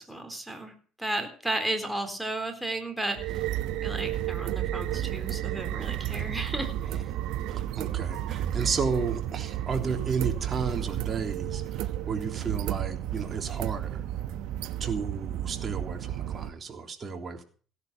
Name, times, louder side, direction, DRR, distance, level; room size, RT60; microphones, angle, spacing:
voice 1, 0.0-3.5 3.8-7.0, right 1 dB, 5° right, 6 dB, 3.8 m, -34 dB
sound 1, 3.1-16.5, right 12 dB, 75° right, 1.0 m, -32 dB
voice 2, 7.5-14.0 14.8-17.4, right 5 dB, 35° right, 5 dB, 3.4 m, -33 dB
17.0 x 11.0 x 5.9 m, 0.42 s
supercardioid pair, 90°, 0 cm